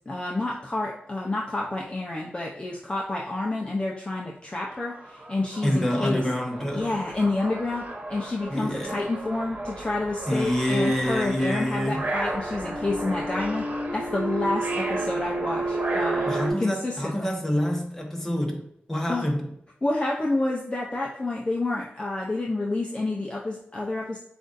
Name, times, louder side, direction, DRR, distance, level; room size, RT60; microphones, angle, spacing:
voice 1, 0.1-6.2 6.7-7.8 8.1-16.3 16.6-17.4 19.1-19.3 19.8-24.2, left 2 dB, 30° left, -2 dB, 0.7 m, -29 dB
sound 1, 4.6-4.7 5.0-16.5, right 2 dB, 45° right, 1.3 m, -32 dB
voice 2, 5.6-7.0 8.5-9.0 10.3-12.1 16.2-19.5, equal, 10° left, 0 dB, 1.2 m, -27 dB
7.5 x 2.6 x 2.6 m, 0.76 s
cardioid pair, 65°, 4 cm